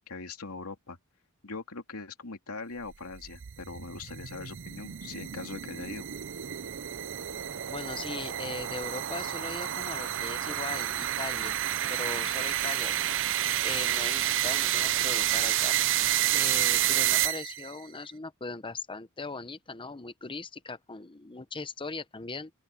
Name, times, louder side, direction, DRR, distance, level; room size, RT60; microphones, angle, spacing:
voice 1, 0.1-1.0 1.4-6.1, left 3 dB, 80° left, 2.8 m, -41 dB
sound 1, 2.9-17.7, right 13 dB, 60° right, 0.6 m, -29 dB
voice 2, 7.7-11.6 11.9-13.2 13.6-15.8 16.3-22.5, left 3 dB, 25° left, 0.9 m, -39 dB
open air
head